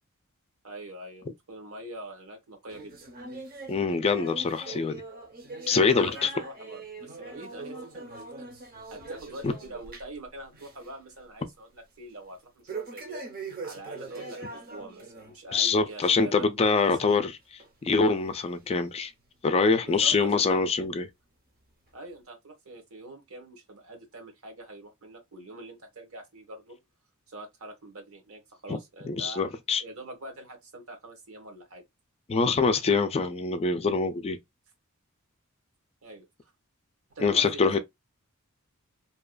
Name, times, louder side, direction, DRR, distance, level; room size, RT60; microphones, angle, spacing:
voice 1, 0.6-3.1 5.9-8.5 8.9-13.2 13.6-17.2 19.8-20.6 21.9-26.8 27.3-31.8 36.0-36.5 37.1-37.8, right 1 dB, 70° right, 1.2 m, -44 dB
sound 1, 2.7-10.2 10.5-10.9 11.2-11.3 12.7-15.3 15.7-15.9 16.6-16.7 17.6-17.7 18.5-18.6, right 3 dB, 45° right, 0.8 m, -42 dB
voice 2, 3.7-5.0 5.7-6.3 9.4-9.5 15.5-17.3 17.8-19.1 19.4-21.1 28.7-28.8 29.0-29.8 32.3-34.4 37.2-37.8, left 4 dB, 30° left, 0.3 m, -24 dB
2.8 x 2.3 x 2.2 m
head